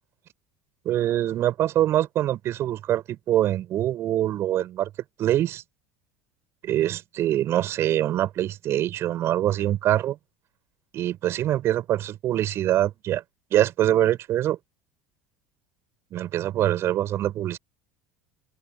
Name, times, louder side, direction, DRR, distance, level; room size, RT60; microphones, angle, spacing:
voice 1, 0.8-4.9 5.2-5.6 6.6-10.2 10.9-13.2 13.5-14.6 16.1-17.6, right 12 dB, 45° right, 6.7 m, -24 dB
figure-of-eight pair, 70°, 6 cm